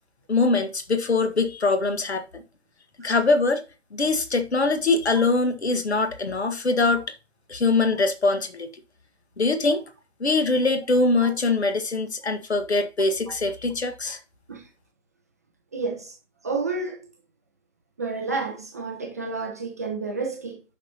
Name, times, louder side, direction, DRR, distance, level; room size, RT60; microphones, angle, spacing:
voice 1, 0.3-2.4 3.0-3.6 3.9-7.0 7.5-8.7 9.4-9.8 10.2-14.2, left 3 dB, 65° left, 1.7 m, -23 dB
voice 2, 15.7-16.2 16.4-17.1 18.0-20.6, right 3 dB, 15° right, 0.6 m, -30 dB
9.8 x 5.8 x 2.9 m
figure-of-eight pair, 140°, 36 cm